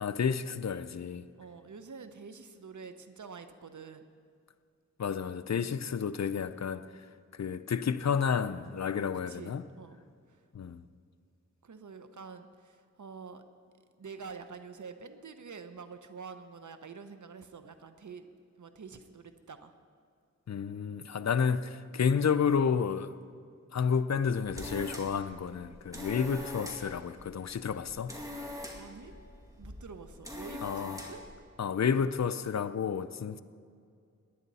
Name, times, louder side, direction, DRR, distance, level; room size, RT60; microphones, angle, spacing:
voice 1, 0.0-1.2 5.0-6.9 7.4-9.6 10.5-10.8 20.5-23.1 23.7-28.1 30.6-31.0 31.6-33.4, left 6 dB, 60° left, 0.5 m, -30 dB
voice 2, 1.4-4.0 9.3-10.0 10.3-10.4 11.6-13.4 14.0-18.3 18.6-19.7 22.0-22.1 28.7-29.1 29.6-31.2 33.3-33.4, right 5 dB, 75° right, 0.9 m, -47 dB
sound 1, 24.2-31.3, left 1 dB, 10° right, 2.3 m, -44 dB
18.5 x 10.5 x 4.2 m
wide cardioid pair, 45°, 30 cm